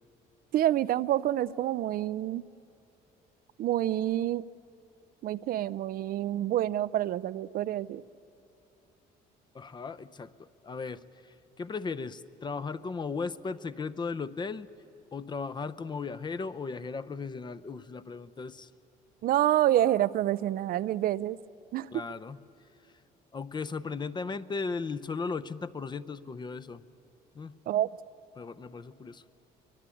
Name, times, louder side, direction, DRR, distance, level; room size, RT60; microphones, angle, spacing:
voice 1, 0.5-2.5 3.6-4.5 5.2-8.0 19.2-21.4 21.7-21.9 27.7-27.9, right 13 dB, 60° right, 16 dB, 0.5 m, -27 dB
voice 2, 9.5-14.7 15.1-18.7 21.9-22.4 23.3-26.8 27.3-27.5 28.4-29.2, left 4 dB, 25° left, 13 dB, 0.6 m, -36 dB
24.0 x 21.5 x 8.5 m, 2.8 s
cardioid pair, 110°, 17 cm